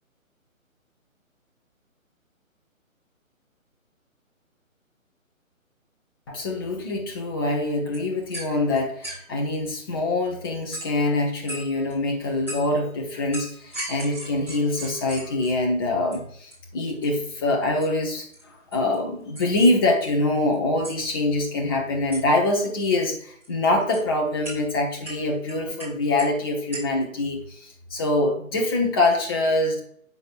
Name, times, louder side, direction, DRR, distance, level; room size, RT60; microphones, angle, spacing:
voice 1, 6.3-18.2 18.7-29.8, left 2 dB, 15° left, 0 dB, 1.0 m, -24 dB
sound 1, 7.7-7.8 7.9-9.4 10.7-11.0 11.5-11.9 12.5-12.8 13.3-15.7 16.1-16.2 16.5-16.6 16.9-17.3 17.8-17.9 18.2-18.4 18.7-19.0 19.4-19.6 19.9-20.5 20.8-20.9 22.1-22.2 22.5-22.7 23.3-24.0 24.4-24.6 25.1-26.4 26.7-27.0, right 1 dB, 5° right, 3.3 m, -37 dB
8.4 x 6.6 x 2.5 m, 0.62 s
figure-of-eight pair, 145°, 41 cm